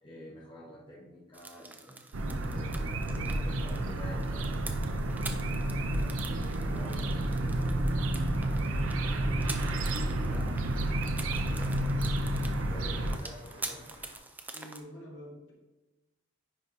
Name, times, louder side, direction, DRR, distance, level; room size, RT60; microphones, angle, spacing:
voice 1, 0.0-5.4 5.9-6.3 6.6-7.9 8.5-12.2 12.7-13.8, equal, 25° left, -5 dB, 1.3 m, -49 dB
sound 1, 1.3-14.8, right 3 dB, 10° right, 0.4 m, -46 dB
sound 2, 2.1-13.2, right 1 dB, 90° right, 0.6 m, -30 dB
sound 3, 2.9-14.2, right 1 dB, 60° right, 1.9 m, -54 dB
voice 2, 12.3-13.0 14.5-15.5, equal, 65° left, -3 dB, 1.8 m, -48 dB
9.8 x 4.7 x 2.7 m, 1.1 s
head